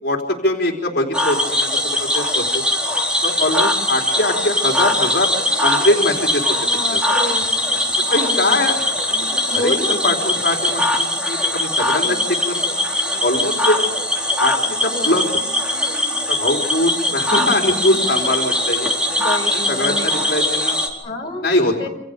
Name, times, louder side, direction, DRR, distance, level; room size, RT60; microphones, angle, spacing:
voice 1, 0.0-2.6 3.2-5.3 5.6-6.4 6.7-7.1 8.1-8.8 9.1-12.6 13.2-13.8 14.4-15.3 16.3-18.9 19.5-20.8 21.4-21.9, left 1 dB, 60° left, 0 dB, 3.9 m, -22 dB
Cricket / Frog, 1.1-20.9, left 1 dB, 5° right, 4.3 m, -21 dB
voice 2, 5.5-5.9 6.6-7.5 8.2-8.6 9.5-10.0 14.9-15.3 19.2-20.1 21.0-21.9, left 1 dB, 25° left, 0 dB, 5.2 m, -29 dB
28.5 x 27.0 x 5.3 m, 0.79 s
head